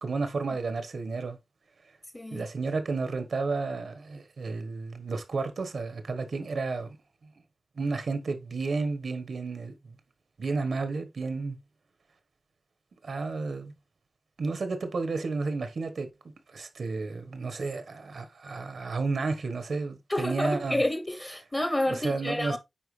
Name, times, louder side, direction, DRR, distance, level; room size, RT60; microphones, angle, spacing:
voice 1, 0.0-1.4 2.3-7.0 7.8-9.9 10.4-11.6 13.0-13.7 14.4-16.1 16.5-20.8 21.8-22.6, right 3 dB, 85° right, 1.3 m, -32 dB
voice 2, 2.1-2.5 20.1-22.6, left 1 dB, 20° left, 0.8 m, -29 dB
9.1 x 4.5 x 3.2 m
wide cardioid pair, 110°, 0 cm